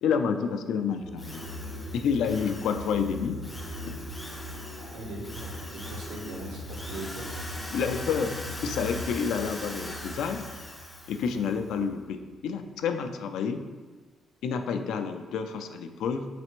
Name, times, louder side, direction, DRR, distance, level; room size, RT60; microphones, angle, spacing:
voice 1, 0.0-1.4 1.9-3.4 3.9-4.0 7.7-8.3 8.6-10.4 11.1-13.6 14.4-16.3, left 6 dB, 85° left, 7 dB, 0.3 m, -29 dB
sound 1, 0.8-12.2, left 1 dB, 60° right, 0.8 m, -40 dB
Drill, 1.2-11.6, left 1 dB, 10° left, 0.4 m, -42 dB
voice 2, 4.8-7.3, right 1 dB, 85° right, -1 dB, 1.0 m, -40 dB
4.1 x 3.3 x 3.0 m, 1.4 s
cardioid pair, 155°, 0 cm